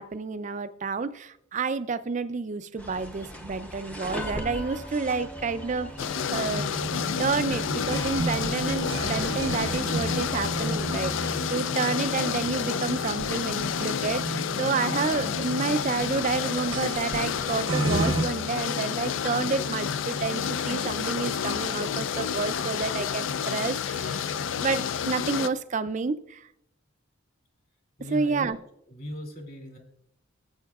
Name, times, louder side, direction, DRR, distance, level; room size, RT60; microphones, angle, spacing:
voice 1, 0.0-6.7 7.2-24.3 24.6-26.4 28.1-28.6, right 4 dB, 35° right, 12 dB, 0.4 m, -30 dB
sound 1, 2.8-11.0, equal, 5° left, 0.7 m, -40 dB
sound 2, 6.0-25.5, left 7 dB, 60° left, 0.3 m, -30 dB
sound 3, 6.5-18.2, right 2 dB, 70° right, 0.9 m, -33 dB
voice 2, 28.0-28.6 28.9-29.8, equal, 45° left, 2 dB, 2.5 m, -38 dB
17.5 x 7.9 x 2.4 m, 0.75 s
head